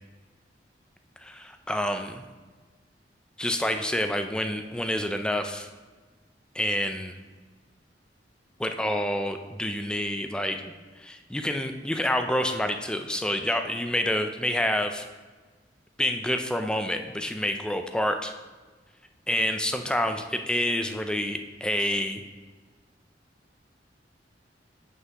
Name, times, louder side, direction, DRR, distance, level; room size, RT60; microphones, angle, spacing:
voice 1, 1.2-2.2 3.4-5.7 6.5-7.1 8.6-10.6 11.0-15.1 16.0-18.3 19.3-22.2, left 1 dB, 5° left, 6 dB, 0.4 m, -28 dB
9.4 x 5.6 x 3.0 m, 1.3 s
head